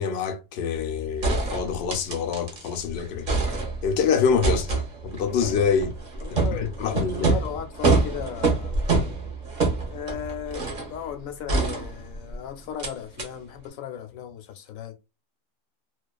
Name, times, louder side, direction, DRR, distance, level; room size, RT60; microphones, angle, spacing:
voice 1, 0.0-3.3 3.8-5.9 6.5-7.3, left 6 dB, 65° left, 0.7 m, -26 dB
sound 1, 0.8-0.9 1.2-2.8 3.0-4.0 4.4-10.9 11.5-12.3 12.8-12.9 13.2-13.3, right 3 dB, 45° right, 0.7 m, -26 dB
voice 2, 6.2-6.7 7.2-8.9 9.9-15.0, left 9 dB, 90° left, 1.0 m, -36 dB
2.3 x 2.3 x 2.3 m
omnidirectional pair, 1.4 m